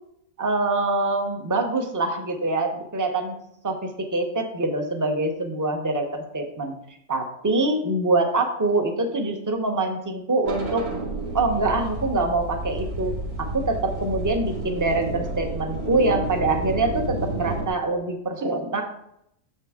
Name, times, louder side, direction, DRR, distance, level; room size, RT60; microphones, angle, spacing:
voice 1, 0.4-3.3 3.6-6.1 6.3-6.7 7.1-10.9 11.3-13.1 13.4-18.8, right 2 dB, 15° right, 4 dB, 0.7 m, -24 dB
sound 1, 10.4-17.7, right 2 dB, 75° right, 1.8 m, -31 dB
7.0 x 6.8 x 3.7 m, 0.75 s
omnidirectional pair, 1.6 m